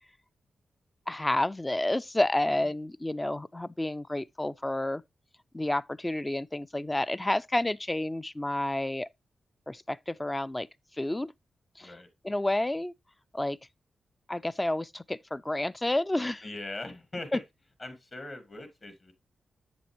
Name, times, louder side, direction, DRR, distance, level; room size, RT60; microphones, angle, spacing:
voice 1, 1.1-5.0 5.5-9.1 9.7-10.7 11.0-11.3 11.8-11.9 12.2-12.9 13.3-13.6 14.3-16.4 17.3-17.4, left 1 dB, 15° left, 0.3 m, -30 dB
voice 2, 16.4-17.4 17.8-19.1, left 2 dB, 40° left, 2.0 m, -41 dB
7.8 x 6.9 x 2.8 m
cardioid pair, 80°, 0 cm